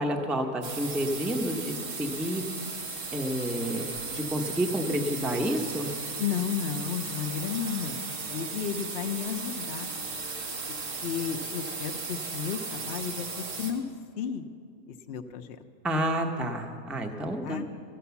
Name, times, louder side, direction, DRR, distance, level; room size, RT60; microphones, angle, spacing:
voice 1, 0.0-2.5 3.1-3.9 4.1-5.9 15.8-17.6, equal, ahead, 3 dB, 0.6 m, -29 dB
sound 1, 0.6-13.7, right 4 dB, 80° right, 1.8 m, -36 dB
voice 2, 6.2-9.9 11.0-13.8 14.2-14.5 14.9-15.6 17.4-17.6, left 8 dB, 60° left, 5 dB, 0.7 m, -33 dB
13.5 x 11.0 x 7.0 m, 2.2 s
omnidirectional pair, 1.5 m